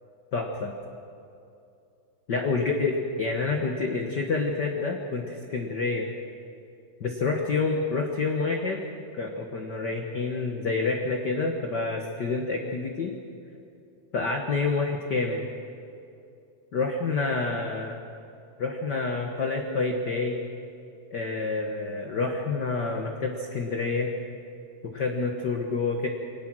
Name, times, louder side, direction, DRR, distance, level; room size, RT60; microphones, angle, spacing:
voice 1, 0.3-0.7 2.3-6.1 7.0-8.8 9.1-13.2 14.1-15.4 16.7-18.0 18.6-20.4 21.1-24.1 24.9-26.1, left 3 dB, 70° left, 2 dB, 1.0 m, -28 dB
23.5 x 18.5 x 6.2 m, 2.6 s
omnidirectional pair, 3.9 m